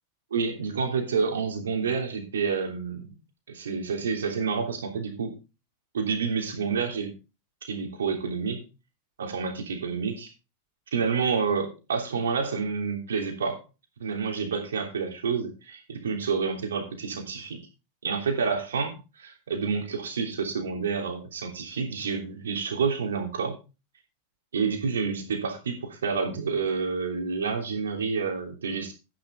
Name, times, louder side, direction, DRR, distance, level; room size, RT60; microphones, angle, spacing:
voice 1, 0.3-3.1 3.5-5.3 5.9-7.1 7.6-8.6 9.2-10.3 10.9-13.6 14.0-17.6 18.0-23.6 24.5-28.9, right 5 dB, 75° right, 4 dB, 3.1 m, -29 dB
10.5 x 10.0 x 3.7 m, 0.29 s
figure-of-eight pair, 90°, 0 cm